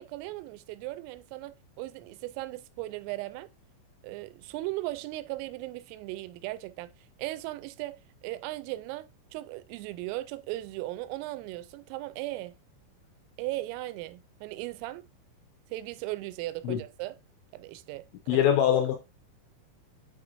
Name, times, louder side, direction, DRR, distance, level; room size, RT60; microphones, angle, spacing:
voice 1, 0.0-3.5 4.0-6.9 7.2-8.0 8.2-12.6 13.4-15.0 15.7-17.2 17.5-18.4, right 18 dB, 85° right, 3.2 m, -37 dB
voice 2, 18.3-19.0, left 10 dB, 85° left, 2.5 m, -23 dB
9.2 x 4.3 x 2.6 m
omnidirectional pair, 5.7 m